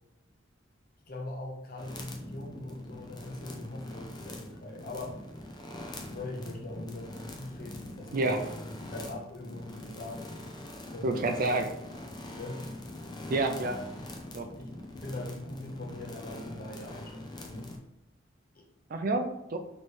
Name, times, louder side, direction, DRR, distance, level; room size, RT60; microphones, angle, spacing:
voice 1, 1.1-5.2 6.1-10.2 10.9-11.4 12.3-12.7 14.6-14.7 15.0-17.7 18.5-18.7, left 2 dB, 50° left, 0 dB, 0.9 m, -41 dB
sound 1, 1.8-17.8, left 1 dB, 20° left, 0.6 m, -43 dB
voice 2, 11.0-11.7 13.3-13.8 14.3-14.5 18.9-19.6, right 2 dB, 45° right, 5 dB, 0.5 m, -28 dB
3.2 x 3.2 x 4.3 m, 0.90 s
head